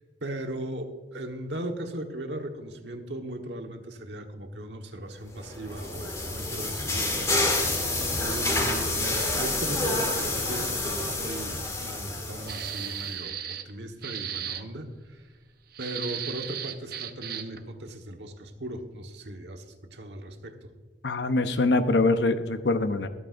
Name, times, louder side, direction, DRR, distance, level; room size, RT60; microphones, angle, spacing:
voice 1, 0.2-7.7 8.2-15.2 15.8-20.7, right 1 dB, 75° right, 4 dB, 1.4 m, -38 dB
sound 1, 5.4-13.0, left 2 dB, 20° left, 2.1 m, -28 dB
sound 2, 12.5-13.7 14.0-14.6 15.7-17.6, right 9 dB, 60° right, 0.7 m, -35 dB
voice 2, 21.0-23.1, left 2 dB, 75° left, 9 dB, 0.8 m, -24 dB
24.0 x 8.7 x 2.6 m, 1.4 s
head